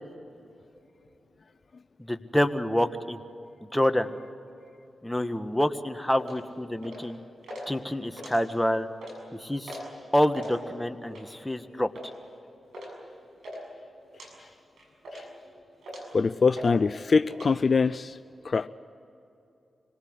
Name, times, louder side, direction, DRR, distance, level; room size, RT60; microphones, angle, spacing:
voice 1, 2.1-3.2 3.7-4.1 5.0-7.2 7.7-8.9 9.4-9.8 10.1-11.9, left 1 dB, 10° left, 8 dB, 1.6 m, -27 dB
sound 1, 6.2-6.4 6.8-7.1 7.4-7.7 8.1-8.6 8.9-9.2 9.7-9.9 10.2-10.5 11.1-11.4 11.9-12.1 12.7-12.9 13.2-13.6 14.1-14.3 14.8-15.4 15.8-16.2 16.6-16.7 17.0-17.5, equal, 85° right, 6.9 m, -41 dB
voice 2, 16.1-18.2 18.4-18.7, left 4 dB, 55° left, 13 dB, 0.5 m, -23 dB
26.0 x 19.0 x 8.1 m, 2.8 s
supercardioid pair, 45°, 0 cm